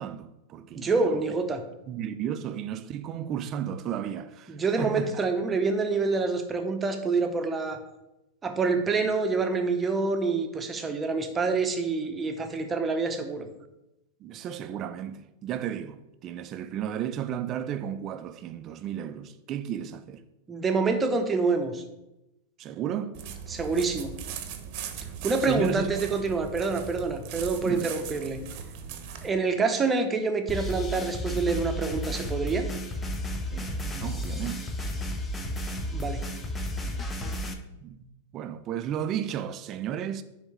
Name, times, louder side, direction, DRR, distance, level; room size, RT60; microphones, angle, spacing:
voice 1, 0.0-1.2 1.9-5.1 14.2-20.2 22.6-23.1 25.4-25.9 27.6-27.9 33.5-34.7 37.8-40.2, right 9 dB, 40° right, 0.5 m, -34 dB
voice 2, 0.7-1.6 4.5-7.8 8.4-13.5 20.5-21.8 23.5-24.1 25.2-28.4 29.2-32.7 35.9-36.2, right 4 dB, 20° right, 0.9 m, -27 dB
sound 1, 23.1-29.3, right 8 dB, 55° right, 0.9 m, -39 dB
sound 2, 30.5-37.5, left 1 dB, 20° left, 0.8 m, -32 dB
9.8 x 3.6 x 3.2 m
hypercardioid pair, 105°, 0 cm